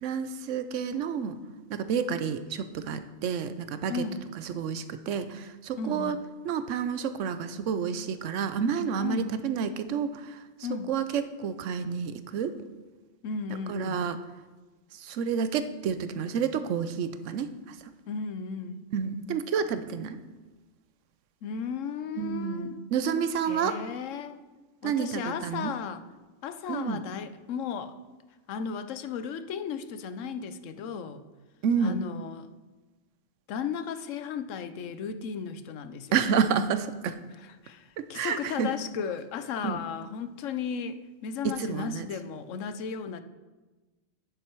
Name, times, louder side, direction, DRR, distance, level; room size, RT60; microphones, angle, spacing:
voice 1, 0.0-1.4 1.7-4.0 4.5-6.2 6.4-10.4 10.9-12.5 13.7-14.2 15.0-17.5 18.9-20.2 22.2-23.8 24.8-25.7 26.7-27.0 31.6-32.0 36.1-37.2 38.0-38.7 39.6-39.8 41.4-42.0, right 7 dB, 75° right, 11 dB, 1.0 m, -29 dB
voice 2, 3.9-4.2 5.8-6.2 9.0-9.3 10.6-10.9 13.2-14.1 18.1-18.8 21.4-22.8 23.5-24.4 24.8-26.0 26.4-27.9 28.5-31.2 31.8-32.5 33.5-36.2 37.4-43.2, left 6 dB, 85° left, 11 dB, 1.0 m, -35 dB
10.0 x 7.4 x 4.6 m, 1.2 s
omnidirectional pair, 1.3 m